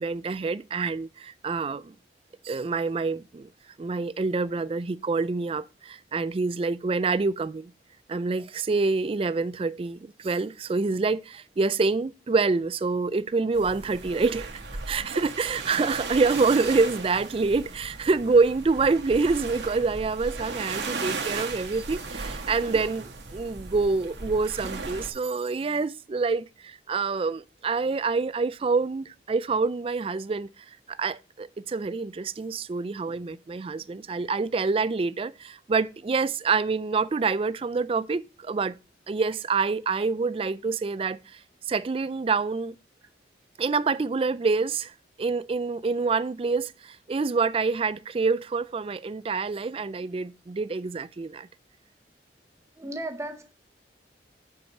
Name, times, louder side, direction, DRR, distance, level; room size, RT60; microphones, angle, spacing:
voice 1, 0.0-1.9 2.4-3.5 3.8-7.7 8.1-38.7 39.1-41.4 41.7-42.7 43.6-44.9 45.2-51.5, right 4 dB, 30° right, 0.3 m, -26 dB
sound 1, 13.5-25.1, right 4 dB, 80° right, 1.7 m, -36 dB
voice 2, 52.8-53.5, right 1 dB, 15° right, 0.9 m, -35 dB
7.1 x 4.9 x 6.4 m
head